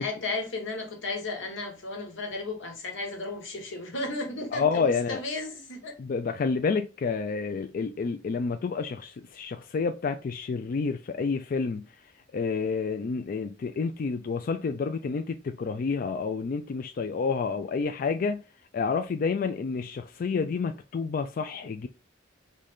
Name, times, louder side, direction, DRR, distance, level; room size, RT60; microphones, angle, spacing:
voice 1, 0.0-5.9, left 2 dB, 85° left, 1.3 m, -34 dB
voice 2, 4.5-5.2 6.0-18.4 18.7-21.9, left 5 dB, 50° left, 0.3 m, -29 dB
3.9 x 3.2 x 3.5 m
head